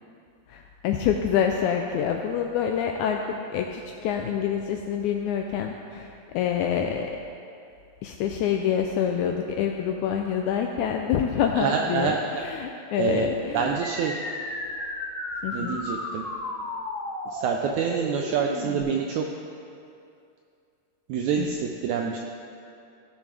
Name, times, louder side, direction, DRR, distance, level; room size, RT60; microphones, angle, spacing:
voice 1, 0.5-3.2 3.5-7.1 8.0-13.8 15.4-15.8 21.4-21.5, left 8 dB, 85° left, 3 dB, 1.7 m, -26 dB
voice 2, 11.5-12.2 12.9-14.2 15.5-16.3 17.3-19.3 21.1-22.2, right 7 dB, 85° right, 2 dB, 1.7 m, -27 dB
sound 1, 13.8-18.8, left 2 dB, 40° left, 3.1 m, -34 dB
15.5 x 7.0 x 3.3 m, 2.6 s
omnidirectional pair, 3.9 m